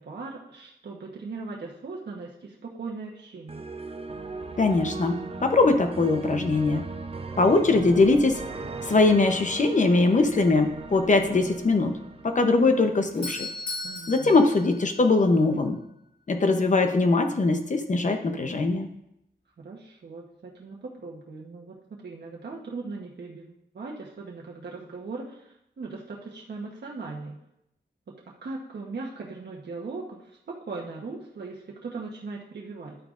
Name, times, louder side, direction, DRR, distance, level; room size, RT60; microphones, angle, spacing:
voice 1, 0.0-3.6 13.8-14.4 19.6-27.4 28.4-33.0, right 3 dB, 70° right, -3 dB, 1.1 m, -39 dB
sound 1, 3.5-13.5, right 3 dB, 30° right, 0.5 m, -38 dB
voice 2, 4.6-6.8 7.4-8.4 8.8-12.0 12.2-13.5 14.1-15.8 16.3-18.9, left 3 dB, 40° left, 6 dB, 0.8 m, -21 dB
Doorbell, 13.0-15.6, left 2 dB, 75° left, 3.1 m, -37 dB
11.0 x 8.9 x 2.5 m, 0.81 s
wide cardioid pair, 155°, 18 cm